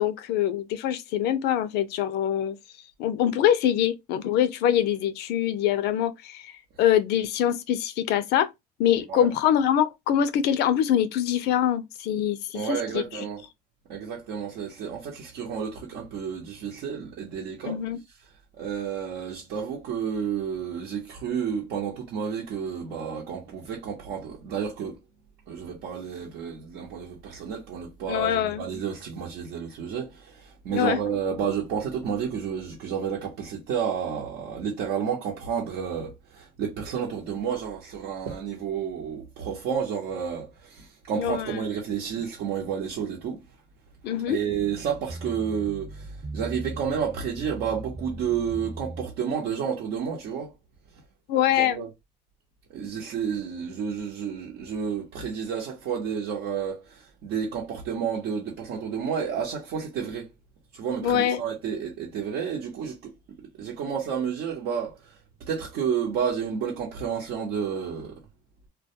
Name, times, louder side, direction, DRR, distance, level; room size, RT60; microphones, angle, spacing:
voice 1, 0.0-2.6 3.0-6.5 6.8-8.5 8.8-13.0 17.7-18.0 28.1-28.6 30.7-31.0 41.2-41.5 44.0-44.4 51.3-51.8 61.0-61.4, left 10 dB, 80° left, 0.4 m, -24 dB
voice 2, 12.5-13.4 13.9-17.8 18.6-25.0 25.5-43.4 44.3-50.5 51.6-51.9 52.7-60.3 60.7-63.1 63.6-65.0 65.5-68.2, right 7 dB, 85° right, 0.8 m, -31 dB
sound 1, 44.5-49.1, right 2 dB, 35° right, 0.8 m, -39 dB
2.2 x 2.2 x 2.7 m
cardioid pair, 110°, 17 cm